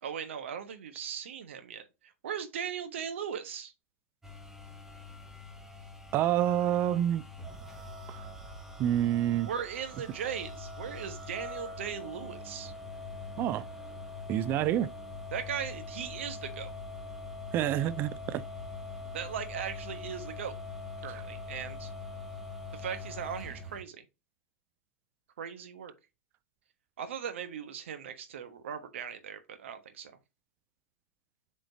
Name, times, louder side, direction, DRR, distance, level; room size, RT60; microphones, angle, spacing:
voice 1, 0.0-3.7 9.4-12.7 15.3-16.7 19.1-20.6 21.0-21.9 22.7-24.0 25.4-25.9 27.0-30.1, right 8 dB, 55° right, 1.2 m, -38 dB
sound 1, 4.2-23.8, left 3 dB, 5° right, 1.1 m, -43 dB
voice 2, 6.1-7.2 8.1-8.2 8.8-9.5 13.4-13.6 14.3-14.9 17.5-18.4, right 11 dB, 25° right, 0.4 m, -27 dB
7.7 x 4.4 x 2.9 m
figure-of-eight pair, 100°, 8 cm